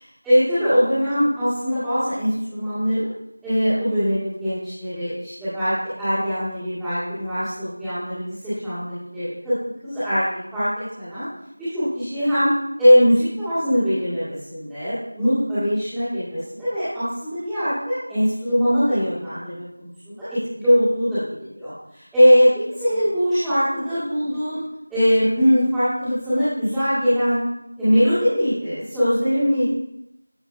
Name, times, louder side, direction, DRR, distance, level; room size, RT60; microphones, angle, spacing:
voice 1, 0.2-3.1 3.4-9.6 9.8-10.2 10.5-11.3 11.6-12.5 12.8-19.6 20.0-21.2 21.5-24.6 24.9-27.4 27.8-29.6, equal, ahead, -23 dB, 1.9 m, -21 dB
14.0 x 4.8 x 2.6 m, 0.81 s
figure-of-eight pair, 175°, 0 cm